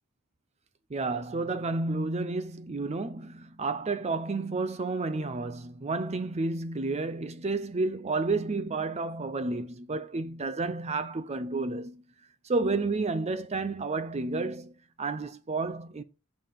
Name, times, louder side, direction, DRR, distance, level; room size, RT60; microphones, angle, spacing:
voice 1, 0.9-12.0 12.4-16.0, right 3 dB, 30° right, 0.5 m, -31 dB
6.8 x 5.5 x 5.6 m
head